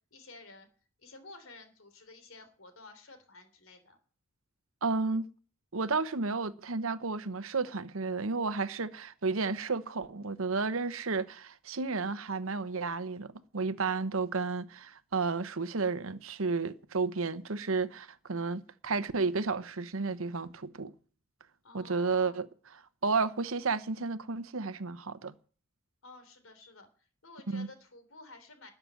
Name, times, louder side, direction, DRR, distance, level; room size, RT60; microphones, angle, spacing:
voice 1, 0.1-0.7 1.0-4.0 21.6-22.5 26.0-26.9 27.2-28.7, left 2 dB, 70° left, 3.3 m, -52 dB
voice 2, 4.8-5.3 5.7-20.9 21.7-22.5 23.0-25.3 27.5-27.7, right 4 dB, 75° right, 1.0 m, -32 dB
13.0 x 6.9 x 9.9 m
head